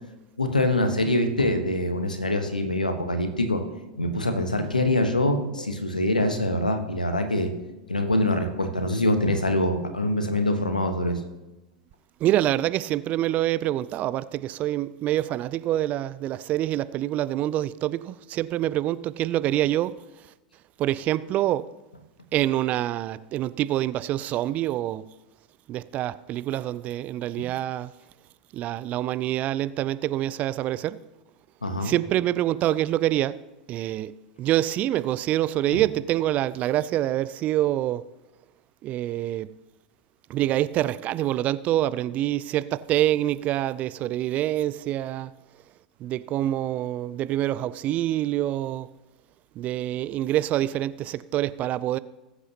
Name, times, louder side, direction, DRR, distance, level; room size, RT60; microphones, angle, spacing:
voice 1, 0.4-3.6 4.0-7.5 7.9-11.2 26.5-26.6 31.6-31.9 35.7-35.8, left 1 dB, 90° left, 1.3 m, -24 dB
voice 2, 12.2-19.9 20.8-21.6 22.3-25.0 25.7-27.9 28.5-31.0 31.9-33.3 33.7-34.1 34.4-38.0 38.8-39.5 40.3-45.3 46.0-48.9 49.6-52.0, right 13 dB, 35° right, 0.4 m, -26 dB
20.0 x 8.1 x 2.9 m
figure-of-eight pair, 90°, 4 cm